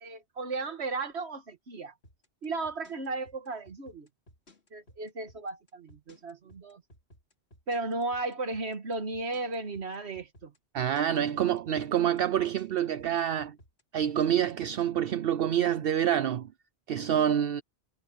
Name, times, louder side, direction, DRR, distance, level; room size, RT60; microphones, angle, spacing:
voice 1, 0.0-1.9 2.4-4.1 4.7-6.8 7.7-10.5, right 3 dB, 80° right, 1.9 m, -35 dB
sound 1, 2.0-14.8, equal, 75° left, 3.5 m, -57 dB
voice 2, 10.7-13.6 13.9-16.5 16.9-17.6, right 10 dB, 65° right, 0.8 m, -27 dB
omnidirectional pair, 1.1 m